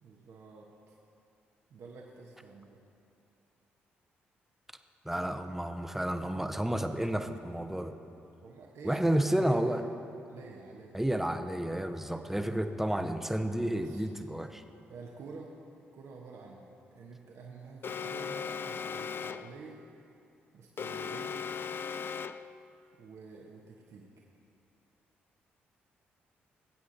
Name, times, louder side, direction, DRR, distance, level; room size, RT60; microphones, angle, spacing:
voice 1, 0.0-0.9 1.7-2.8 8.4-9.8 10.3-11.0 13.7-14.0 14.9-15.5 15.9-19.8 20.5-21.4 23.0-24.1, right 4 dB, 65° right, -2 dB, 1.2 m, -48 dB
voice 2, 5.0-8.0 8.8-9.8 10.9-14.6, right 1 dB, 5° right, 7 dB, 0.9 m, -31 dB
Alarm, 17.8-19.6 20.8-22.6, left 6 dB, 45° left, 0.4 m, -37 dB
18.0 x 8.4 x 4.0 m, 2.6 s
hypercardioid pair, 45°, 5 cm